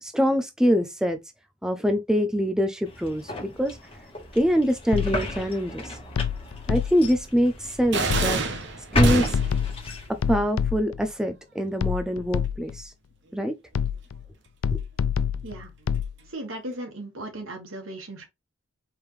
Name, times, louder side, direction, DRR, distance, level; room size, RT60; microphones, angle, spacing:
voice 1, 0.0-1.2 1.6-3.8 4.3-6.0 6.7-8.4 8.9-9.4 10.3-12.9 13.3-13.5 14.7-14.8, equal, 5° right, 0.4 m, -24 dB
sound 1, 2.9-10.3, left 1 dB, 25° left, 1.3 m, -31 dB
sound 2, 4.9-5.4 6.2-7.2 8.1-8.6 9.0-11.1 11.8-12.9 13.7-14.3 14.6-16.1, left 7 dB, 75° left, 0.4 m, -27 dB
sound 3, 7.9-9.7, right 4 dB, 55° right, 0.9 m, -27 dB
voice 2, 16.3-18.3, right 1 dB, 75° right, 1.7 m, -36 dB
4.7 x 3.5 x 3.1 m
head